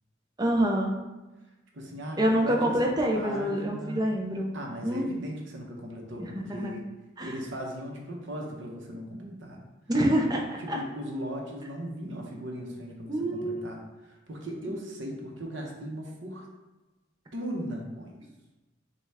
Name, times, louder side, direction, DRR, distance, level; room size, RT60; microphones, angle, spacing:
voice 1, 0.4-1.0 2.2-4.5 4.8-5.2 6.2-6.7 7.2-7.3 9.9-10.8 13.1-13.6, right 1 dB, 20° right, 1 dB, 0.5 m, -26 dB
voice 2, 1.7-2.8 3.1-4.1 4.5-6.8 7.2-9.6 10.6-16.5 17.3-18.2, equal, 70° right, 0 dB, 0.8 m, -38 dB
5.2 x 2.3 x 3.4 m, 1.1 s
head